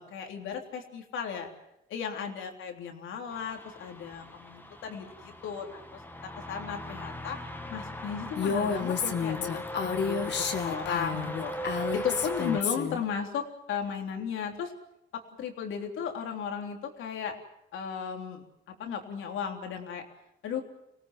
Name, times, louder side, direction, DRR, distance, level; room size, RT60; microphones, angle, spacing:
voice 1, 0.0-1.5 1.9-6.0 6.5-7.4 7.7-10.3 10.6-11.5 11.9-14.7 15.1-17.4 17.7-20.0 20.4-20.6, left 7 dB, 80° left, 3 dB, 3.6 m, -35 dB
sound 1, 3.3-12.6, equal, 10° left, 2.0 m, -39 dB
Female speech woman speaking, 8.4-13.0, left 6 dB, 60° left, 2.4 m, -30 dB
26.5 x 18.5 x 7.6 m, 0.85 s
cardioid pair, 90°, 20 cm